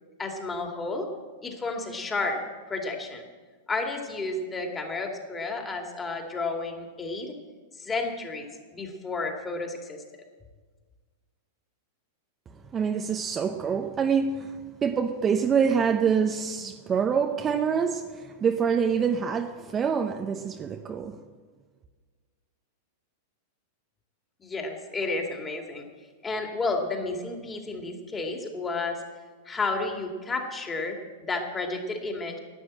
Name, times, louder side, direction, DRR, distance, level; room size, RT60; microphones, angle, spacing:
voice 1, 0.2-1.1 1.4-2.4 2.7-3.2 3.7-7.4 7.7-10.0 24.4-25.9 26.2-29.0 29.4-31.0 31.3-32.4, left 3 dB, 20° left, 2.4 m, -31 dB
voice 2, 12.7-21.2, right 6 dB, 25° right, 0.8 m, -26 dB
12.0 x 9.7 x 7.7 m
hypercardioid pair, 100°, 0 cm